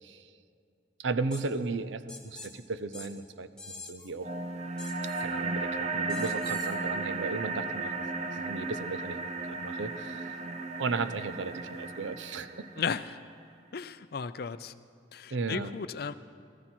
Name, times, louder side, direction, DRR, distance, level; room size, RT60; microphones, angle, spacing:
voice 1, 1.0-3.5 3.8-4.3 5.2-7.9 8.3-10.4 10.8-12.6 15.3-15.7, right 3 dB, 75° right, 13 dB, 0.6 m, -35 dB
sound 1, 1.3-1.4 2.1-2.5 2.9-3.1 3.6-4.1 4.8-5.2 6.1-6.8, left 3 dB, 5° left, 1.1 m, -45 dB
sound 2, 4.2-13.2, right 3 dB, 35° right, 0.6 m, -35 dB
voice 2, 12.8-13.2 13.7-14.7 15.1-16.1, left 6 dB, 55° left, 13 dB, 0.4 m, -35 dB
18.5 x 14.0 x 4.5 m, 2.4 s
head